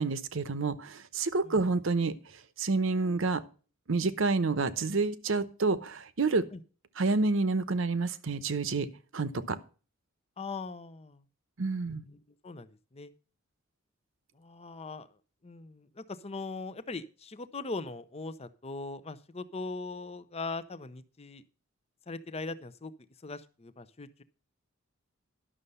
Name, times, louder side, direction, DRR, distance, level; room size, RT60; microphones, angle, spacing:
voice 1, 0.0-2.1 2.6-3.4 3.9-6.4 7.0-8.9 9.1-9.6 11.6-12.0, right 3 dB, 65° right, 13 dB, 0.9 m, -28 dB
voice 2, 10.4-11.2 11.9-13.1 14.4-15.1 15.4-21.4 22.1-22.9 23.2-24.2, left 3 dB, 30° left, 13 dB, 0.7 m, -40 dB
11.5 x 6.6 x 5.5 m, 0.37 s
head